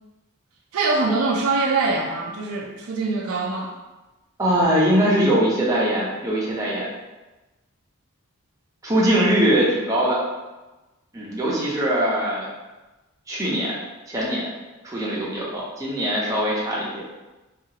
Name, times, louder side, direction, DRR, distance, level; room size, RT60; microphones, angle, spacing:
voice 1, 0.7-3.7, right 3 dB, 70° right, 0 dB, 0.4 m, -23 dB
voice 2, 4.4-6.9 8.8-10.2 11.1-12.5 13.3-13.7 14.1-14.5 14.8-16.9, right 1 dB, 15° right, -6 dB, 0.6 m, -21 dB
2.8 x 2.4 x 2.8 m, 1.1 s
head